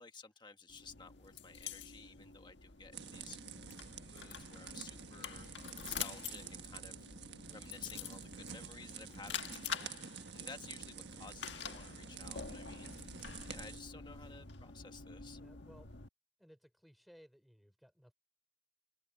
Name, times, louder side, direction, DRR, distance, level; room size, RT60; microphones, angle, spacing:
voice 1, 0.0-3.4 4.0-5.5 5.8-7.1 7.5-12.9 13.5-15.4, left 4 dB, 25° left, 1.6 m, -54 dB
sound 1, 0.7-16.1, left 7 dB, 70° left, 1.6 m, -47 dB
sound 2, 2.9-13.8, right 6 dB, 65° right, 1.5 m, -49 dB
voice 2, 13.9-14.2 15.4-15.9 16.4-18.1, equal, ahead, 3.5 m, -63 dB
open air
head